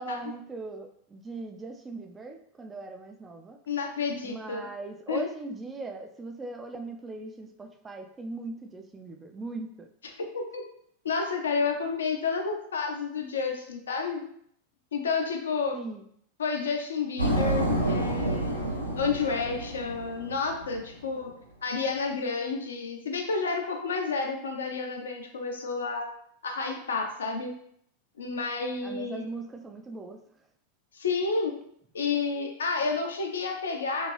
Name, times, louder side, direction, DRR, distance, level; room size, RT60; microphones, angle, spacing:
voice 1, 0.0-3.6 4.2-9.9 15.7-16.0 28.8-30.2, right 3 dB, 15° right, 5 dB, 0.4 m, -39 dB
voice 2, 3.7-4.7 5.1-5.2 10.3-10.6 11.0-14.2 14.9-15.8 16.4-21.3 21.6-26.1 26.4-27.5 28.2-29.3 30.9-31.5 31.9-34.1, left 4 dB, 65° left, 2 dB, 0.5 m, -30 dB
sound 1, 17.2-20.9, right 1 dB, 90° right, 0.5 m, -29 dB
2.7 x 2.5 x 3.1 m, 0.67 s
figure-of-eight pair, 90°, 0 cm